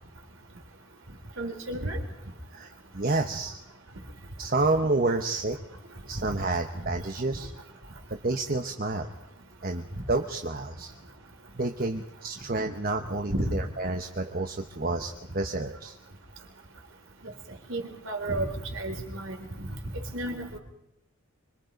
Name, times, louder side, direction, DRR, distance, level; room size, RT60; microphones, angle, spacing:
voice 1, 1.4-2.0 9.9-10.0 13.3-13.5 17.7-19.7 20.1-20.6, right 1 dB, 65° right, 3 dB, 3.9 m, -32 dB
voice 2, 2.5-3.6 4.4-5.6 6.1-7.5 8.2-9.1 9.6-10.9 11.6-15.9, right 2 dB, 40° right, 4 dB, 1.1 m, -29 dB
25.5 x 23.5 x 5.3 m, 0.82 s
head